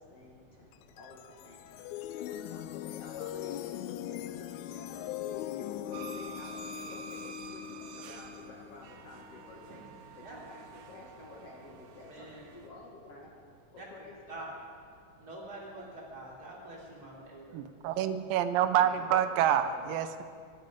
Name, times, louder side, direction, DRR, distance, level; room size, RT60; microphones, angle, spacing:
voice 1, 0.0-13.3 13.7-14.6 15.8-15.9 18.7-20.0, left 3 dB, 50° left, -1 dB, 2.6 m, -51 dB
sound 1, 0.7-10.0, left 12 dB, 90° left, 1.6 m, -41 dB
sound 2, 5.9-12.7, right 5 dB, 70° right, 2.3 m, -49 dB
voice 2, 12.1-12.4 13.8-13.9 14.3-14.5 15.2-15.8 16.1-17.6, right 2 dB, 25° right, -4 dB, 3.7 m, -46 dB
voice 3, 17.5-20.2, right 10 dB, 90° right, 10 dB, 2.5 m, -27 dB
24.0 x 11.5 x 5.2 m, 2.2 s
omnidirectional pair, 3.9 m